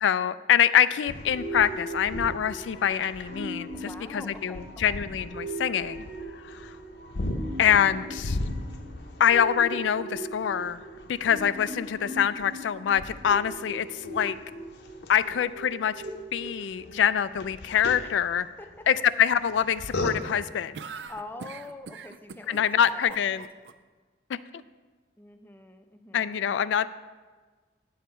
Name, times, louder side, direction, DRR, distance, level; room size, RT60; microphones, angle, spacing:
voice 1, 0.0-6.0 6.4-6.8 7.6-8.4 9.2-10.8 11.1-14.4 15.1-16.0 16.3-18.5 18.9-20.8 22.5-23.5 24.3-24.6 26.1-26.9, left 9 dB, 90° left, 15 dB, 0.3 m, -25 dB
sound 1, 1.1-20.6, left 2 dB, 70° left, 0.7 m, -39 dB
sound 2, 1.2-17.2, right 2 dB, 50° right, 1.0 m, -39 dB
voice 2, 3.7-5.0 18.0-18.1 18.6-18.9 21.1-23.4 25.2-26.4, left 2 dB, 10° left, 7 dB, 0.5 m, -44 dB
sound 3, 20.7-23.7, right 5 dB, 75° right, 0.4 m, -42 dB
9.4 x 7.2 x 4.3 m, 1.4 s
head